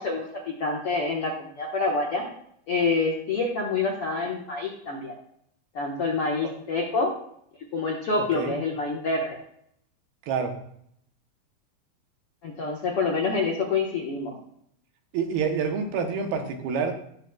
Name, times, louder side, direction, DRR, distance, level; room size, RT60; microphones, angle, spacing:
voice 1, 0.0-2.2 2.7-5.1 5.7-7.1 7.7-9.4 12.4-14.3, left 3 dB, 65° left, -2 dB, 1.4 m, -27 dB
voice 2, 8.2-8.6 10.3-10.5 15.1-16.9, right 6 dB, 75° right, 5 dB, 2.9 m, -27 dB
18.0 x 6.5 x 2.3 m, 0.70 s
omnidirectional pair, 4.5 m